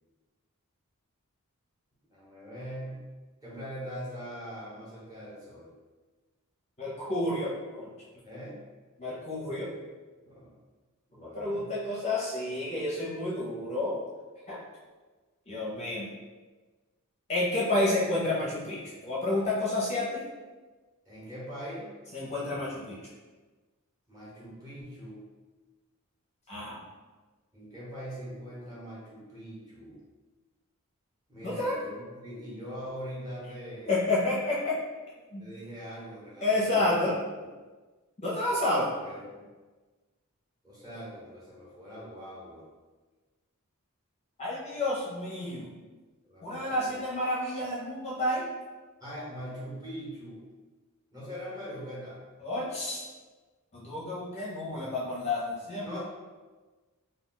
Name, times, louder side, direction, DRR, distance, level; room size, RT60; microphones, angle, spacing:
voice 1, 2.1-3.0 3.4-5.7 8.2-8.6 10.2-10.6 11.1-11.7 21.1-21.9 24.1-25.2 27.5-30.0 31.3-34.0 35.4-37.1 39.0-39.4 40.6-42.6 46.2-47.0 49.0-50.4 51.1-52.2 55.8-56.0, equal, 15° right, -8 dB, 0.9 m, -42 dB
voice 2, 6.8-7.9 9.0-9.7 11.2-14.0 14.5-14.6 15.5-16.1 17.3-20.2 22.1-23.0 26.5-26.8 31.4-31.8 33.9-34.8 35.3-35.4 36.4-37.1 38.2-38.9 44.4-45.7 46.4-48.4 52.4-53.0 53.7-56.0, left 2 dB, 30° left, -7 dB, 0.6 m, -30 dB
2.3 x 2.2 x 3.8 m, 1.3 s
head